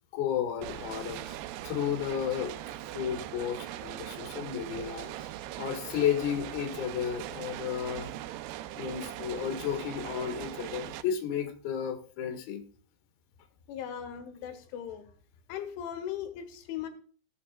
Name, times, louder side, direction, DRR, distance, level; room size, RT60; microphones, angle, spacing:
voice 1, 0.1-1.4 1.6-2.6 2.9-5.3 5.6-8.1 8.8-12.6, left 8 dB, 60° left, 3.2 m, -33 dB
sound 1, 0.6-11.0, right 13 dB, 90° right, 2.3 m, -40 dB
voice 2, 13.7-15.1 15.5-16.9, left 9 dB, 85° left, 3.8 m, -38 dB
17.0 x 8.1 x 2.4 m
omnidirectional pair, 5.4 m